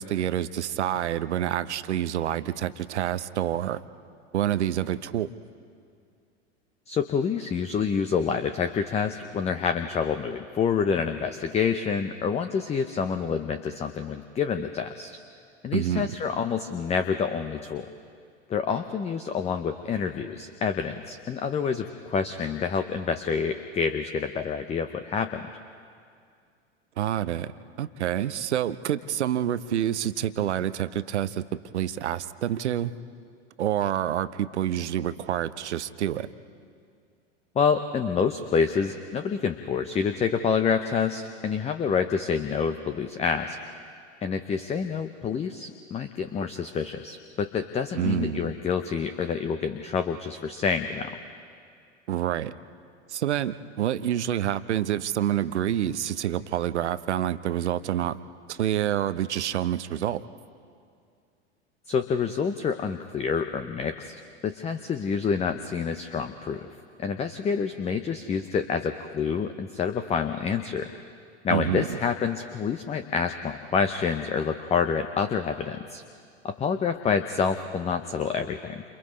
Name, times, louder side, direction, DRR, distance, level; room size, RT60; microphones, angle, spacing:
voice 1, 0.0-3.8 4.3-5.3 15.7-16.2 27.0-27.5 27.8-32.9 33.6-36.3 47.9-48.5 52.1-52.5 53.1-58.2 58.5-60.2 71.5-72.0, right 11 dB, 70° right, 14 dB, 0.8 m, -27 dB
voice 2, 6.9-15.2 15.6-17.9 18.5-25.5 37.5-43.6 44.2-51.2 61.9-66.7 67.0-70.9 71.4-76.0 76.4-78.8, left 6 dB, 20° left, 9 dB, 0.8 m, -27 dB
30.0 x 28.0 x 3.2 m, 2.3 s
figure-of-eight pair, 85°, 36 cm